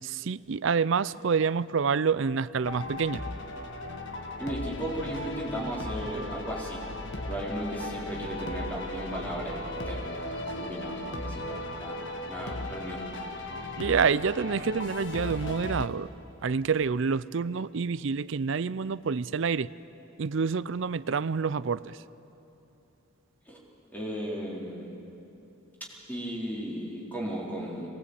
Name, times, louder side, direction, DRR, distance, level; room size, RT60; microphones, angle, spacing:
voice 1, 0.0-3.2 13.8-16.1 16.4-19.7 20.2-22.0, right 5 dB, 60° right, 17 dB, 0.5 m, -27 dB
sound 1, 2.6-15.9, left 1 dB, 55° left, 1.6 m, -36 dB
voice 2, 4.4-6.8 7.3-13.0 23.5-23.6 23.9-24.9 26.1-27.9, equal, 10° left, -5 dB, 4.1 m, -36 dB
22.5 x 20.5 x 8.3 m, 3.0 s
head